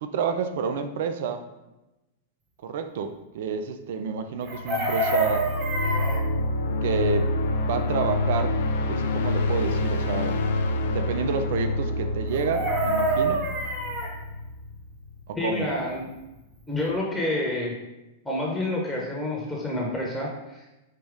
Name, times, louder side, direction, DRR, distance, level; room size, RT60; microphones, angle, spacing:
voice 1, 0.0-1.4 2.6-5.5 6.8-7.3 7.6-8.6 8.9-10.5 10.9-13.5 15.3-15.7, right 6 dB, 55° right, 8 dB, 0.4 m, -29 dB
sound 1, 4.4-15.2, left 2 dB, 60° left, 0.3 m, -27 dB
Chicken rooster, 4.4-6.2 12.3-14.1 16.4-16.5 16.7-17.0, right 2 dB, 30° right, 1.1 m, -26 dB
voice 2, 15.3-16.1 16.7-17.7 18.2-20.6, left 1 dB, 5° left, -3 dB, 0.9 m, -28 dB
4.9 x 3.0 x 3.5 m, 1.0 s
figure-of-eight pair, 95°, 0 cm